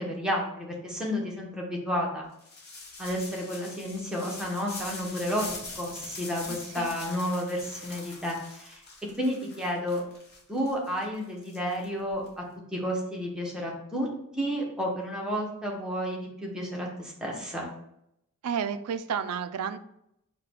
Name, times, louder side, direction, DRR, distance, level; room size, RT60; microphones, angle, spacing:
voice 1, 0.0-2.2 3.0-8.8 9.2-10.0 10.5-12.4 12.7-14.1 14.3-17.7, equal, 5° right, -2 dB, 0.9 m, -31 dB
Haciendo una bola de papel de aluminio, 2.4-12.3, left 3 dB, 45° left, 1.1 m, -43 dB
voice 2, 6.5-6.9 18.4-19.8, right 7 dB, 75° right, 12 dB, 0.3 m, -31 dB
4.9 x 2.2 x 4.3 m, 0.78 s
head